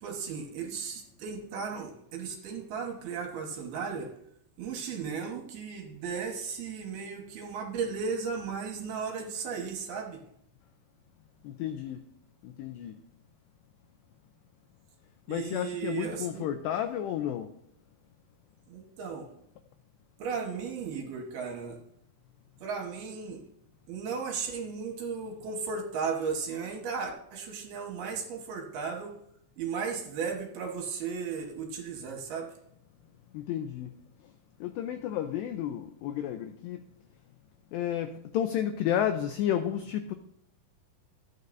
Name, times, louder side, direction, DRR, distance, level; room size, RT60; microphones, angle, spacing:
voice 1, 0.0-4.1 4.6-10.2 15.3-16.5 18.7-19.3 20.2-21.8 22.6-23.4 23.9-29.1 29.6-32.5, right 5 dB, 65° right, 1 dB, 2.8 m, -35 dB
voice 2, 11.4-12.0 12.4-12.9 15.3-17.5 33.3-33.9 34.6-36.8 37.7-40.2, left 10 dB, 90° left, 8 dB, 2.4 m, -31 dB
15.5 x 9.5 x 2.7 m, 0.72 s
omnidirectional pair, 5.6 m